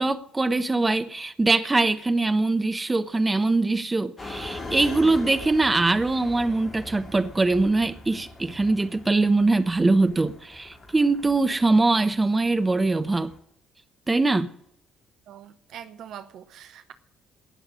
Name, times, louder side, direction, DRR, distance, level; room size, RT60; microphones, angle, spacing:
voice 1, 0.0-13.3 14.1-14.5, right 3 dB, 20° right, 1.0 m, -22 dB
sound 1, 4.2-13.4, left 2 dB, 35° left, 3.8 m, -41 dB
voice 2, 15.3-16.9, right 9 dB, 55° right, 1.0 m, -43 dB
18.5 x 7.0 x 9.6 m
figure-of-eight pair, 45°, 0 cm